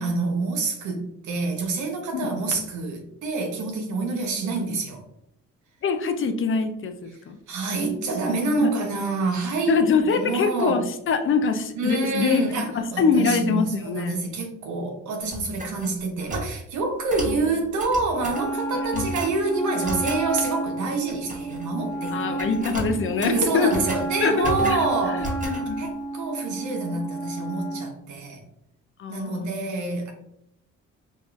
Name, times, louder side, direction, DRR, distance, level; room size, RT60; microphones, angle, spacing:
voice 1, 0.0-5.0 7.5-10.8 11.7-22.4 23.2-25.3 25.8-28.4 29.1-30.1, right 3 dB, 75° right, 2 dB, 1.0 m, -27 dB
voice 2, 5.8-7.4 8.6-8.7 9.7-12.4 12.7-14.2 17.3-17.4 18.9-19.1 22.1-23.7 24.2-24.8 25.4-25.9 29.0-29.7, left 5 dB, 45° left, 8 dB, 0.5 m, -24 dB
sound 1, 15.3-16.5 17.1-17.4 17.8-18.5 18.9-19.4 19.8-20.2 21.1-21.6 21.9-22.1 22.4-24.1 24.4-24.9 25.2-25.6, right 1 dB, 25° right, 1.1 m, -33 dB
Wind instrument woodwind instrument, 18.3-27.9, right 2 dB, 5° left, 0.8 m, -31 dB
5.1 x 2.4 x 2.4 m, 0.79 s
cardioid pair, 90°, 30 cm